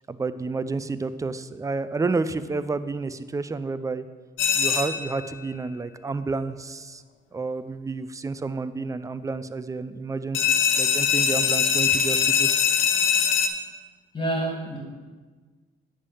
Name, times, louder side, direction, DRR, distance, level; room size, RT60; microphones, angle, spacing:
voice 1, 0.1-4.1 4.5-7.0 7.3-12.5, right 3 dB, 15° right, 12 dB, 0.4 m, -30 dB
sound 1, 4.4-5.2 10.3-13.5, left 7 dB, 80° left, 0.7 m, -22 dB
voice 2, 14.1-14.8, right 1 dB, 25° left, -2 dB, 2.2 m, -27 dB
10.0 x 3.5 x 7.0 m, 1.4 s
cardioid pair, 90°, 20 cm